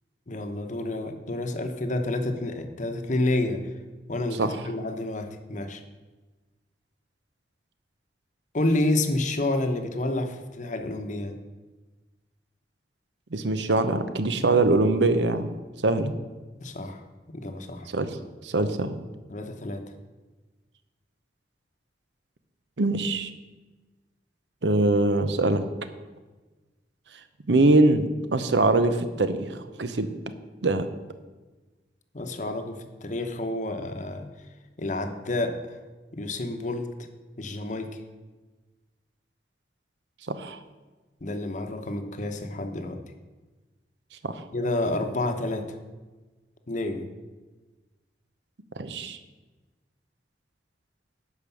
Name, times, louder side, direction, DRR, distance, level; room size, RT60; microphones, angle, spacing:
voice 1, 0.3-3.6 4.1-5.8 8.5-11.3 16.6-17.0 17.3-17.9 19.3-19.8 32.1-34.2 34.8-35.8 36.1-36.9 37.4-38.0 41.2-43.0 44.5-45.8 46.7-47.1, left 2 dB, 45° left, 7 dB, 0.9 m, -29 dB
voice 2, 13.3-15.6 15.8-16.1 17.9-18.1 18.4-19.0 22.8-23.3 24.6-25.6 27.5-30.1 30.6-30.9 40.3-40.6 44.2-44.4 48.8-49.2, right 2 dB, 85° right, 10 dB, 0.8 m, -23 dB
11.5 x 5.1 x 7.0 m, 1.2 s
head